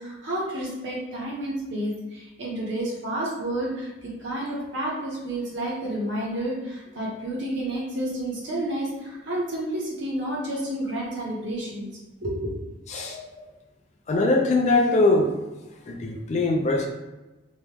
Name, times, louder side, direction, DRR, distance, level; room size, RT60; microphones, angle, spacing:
voice 1, 0.0-11.9 12.2-12.5, right 1 dB, 65° right, -4 dB, 1.0 m, -30 dB
voice 2, 12.9-13.4 14.1-15.3 15.9-16.9, left 2 dB, 35° left, 2 dB, 0.4 m, -22 dB
3.0 x 2.2 x 3.3 m, 1.1 s
head